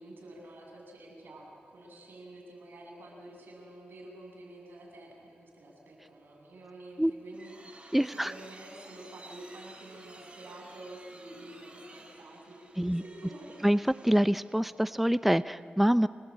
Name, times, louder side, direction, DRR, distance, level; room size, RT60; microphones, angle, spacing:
voice 1, 0.0-13.7, right 1 dB, 85° right, -1 dB, 7.6 m, -49 dB
sound 1, 6.9-14.5, right 2 dB, 35° right, 5.5 m, -53 dB
voice 2, 7.9-8.3 12.8-13.0 13.6-16.1, equal, 5° right, 14 dB, 0.6 m, -25 dB
28.0 x 20.5 x 8.7 m, 2.1 s
cardioid pair, 65°, 3 cm